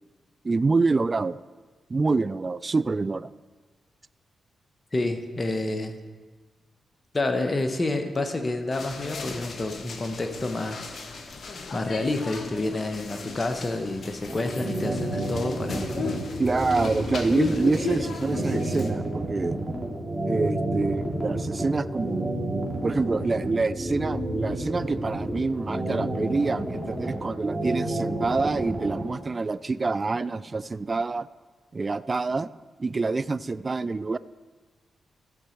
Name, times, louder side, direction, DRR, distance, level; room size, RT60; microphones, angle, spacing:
voice 1, 0.4-1.4 1.9-3.3 16.4-19.6 20.3-22.3 22.8-31.3 31.7-32.5 32.8-34.2, right 3 dB, 40° right, 17 dB, 0.3 m, -26 dB
voice 2, 4.9-6.0 7.1-11.0 11.7-16.1 17.6-17.7, left 2 dB, 35° left, 7 dB, 1.1 m, -29 dB
sound 1, 8.7-18.9, left 4 dB, 60° left, 1.1 m, -35 dB
sound 2, 14.3-29.0, right 1 dB, 15° right, 3.1 m, -30 dB
14.5 x 6.2 x 4.5 m, 1.4 s
supercardioid pair, 45°, 0 cm